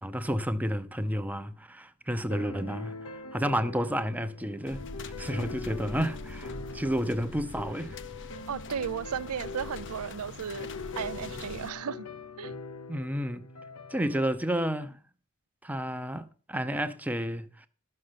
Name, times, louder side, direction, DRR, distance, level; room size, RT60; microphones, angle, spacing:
voice 1, 0.0-8.0 12.9-13.4 13.9-15.0 15.6-17.7, equal, 5° right, 0.6 m, -31 dB
sound 1, 2.3-14.3, left 4 dB, 85° left, 1.0 m, -43 dB
sound 2, 4.7-11.7, left 3 dB, 55° left, 0.7 m, -43 dB
voice 2, 8.5-10.7 11.0-12.1 12.4-12.5, right 7 dB, 75° right, 0.5 m, -34 dB
12.5 x 6.5 x 5.8 m
head